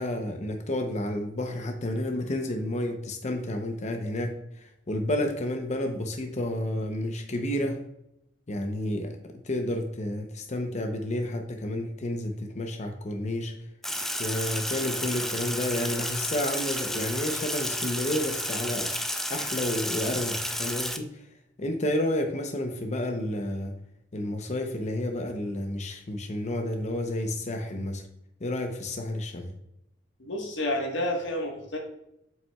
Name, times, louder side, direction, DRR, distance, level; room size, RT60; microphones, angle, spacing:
voice 1, 0.0-7.8 8.5-13.5 14.2-18.9 19.3-21.3 21.6-23.7 24.1-28.0 28.4-29.5, left 1 dB, 40° left, 5 dB, 0.7 m, -30 dB
Sink (filling or washing), 13.8-21.0, equal, ahead, 0.4 m, -31 dB
voice 2, 30.2-31.8, left 1 dB, 75° left, 1 dB, 1.4 m, -30 dB
7.4 x 5.7 x 2.3 m, 0.82 s
head